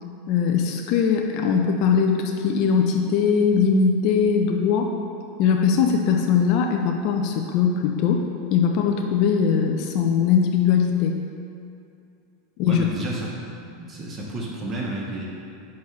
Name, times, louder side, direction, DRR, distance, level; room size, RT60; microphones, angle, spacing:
voice 1, 0.3-4.9 5.4-8.2 8.5-11.1 12.6-12.8, left 6 dB, 55° left, 3 dB, 0.5 m, -20 dB
voice 2, 12.7-13.3 13.8-15.3, right 2 dB, 30° right, -3 dB, 1.0 m, -31 dB
6.0 x 3.1 x 5.7 m, 2.6 s
hypercardioid pair, 105°, 0 cm